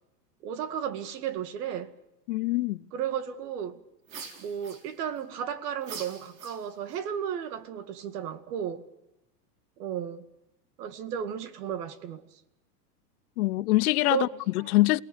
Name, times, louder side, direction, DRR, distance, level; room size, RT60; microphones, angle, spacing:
voice 1, 0.4-1.9 2.9-3.8 4.4-8.9 9.8-10.3 10.8-12.4 14.1-14.4, right 9 dB, 70° right, 2.2 m, -34 dB
voice 2, 2.3-2.9 13.4-14.3 14.5-15.0, left 19 dB, 65° left, 0.8 m, -24 dB
sound 1, 4.1-5.2 5.8-7.0, right 5 dB, 85° right, 4.3 m, -44 dB
28.5 x 18.5 x 6.4 m
supercardioid pair, 125°, 49 cm